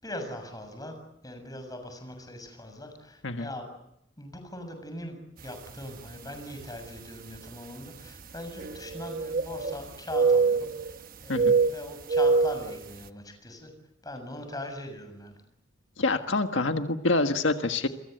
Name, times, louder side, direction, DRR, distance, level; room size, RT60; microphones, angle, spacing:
voice 1, 0.0-1.0 1.2-3.7 4.2-13.7 14.0-15.3, left 1 dB, 20° left, 6 dB, 6.9 m, -41 dB
sound 1, 5.7-5.8 6.6-6.7 8.6-9.8 10.1-10.9 11.3-12.7, right 4 dB, 50° right, 1.0 m, -24 dB
voice 2, 16.0-17.9, left 3 dB, 90° left, 6 dB, 1.6 m, -26 dB
29.5 x 23.0 x 8.0 m, 0.80 s
head